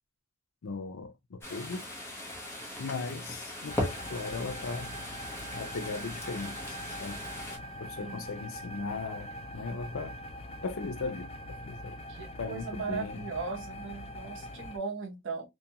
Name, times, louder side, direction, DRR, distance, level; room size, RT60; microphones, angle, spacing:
voice 1, 0.6-1.9 2.8-4.9 5.5-7.2 7.8-10.1 10.6-12.0 12.4-13.2, left 4 dB, 85° left, 0.5 m, -38 dB
sound 1, 1.4-7.6, left 1 dB, 10° left, 0.8 m, -39 dB
sound 2, 3.7-14.8, equal, 30° left, 0.3 m, -43 dB
voice 2, 12.1-15.5, right 4 dB, 60° right, 0.7 m, -38 dB
2.5 x 2.2 x 2.7 m
head